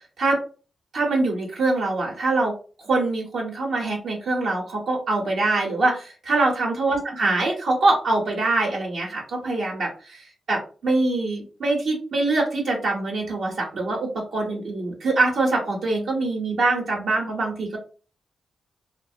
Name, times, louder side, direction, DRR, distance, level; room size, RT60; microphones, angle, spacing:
voice 1, 0.9-2.5 2.8-17.8, right 2 dB, 80° right, -2 dB, 0.7 m, -24 dB
2.4 x 2.0 x 2.6 m, 0.36 s
cardioid pair, 60°, 0 cm